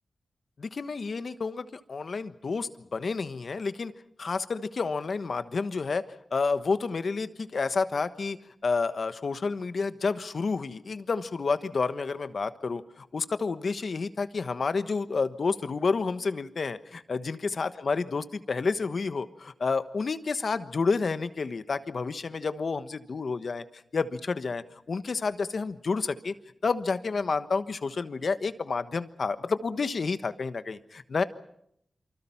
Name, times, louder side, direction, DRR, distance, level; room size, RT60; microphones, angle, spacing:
voice 1, 0.6-3.9 4.2-6.0 6.3-8.4 8.6-23.6 23.9-26.3 26.6-31.2, left 4 dB, 70° left, 12 dB, 1.2 m, -30 dB
27.5 x 25.0 x 5.8 m, 0.72 s
cardioid pair, 55°, 0 cm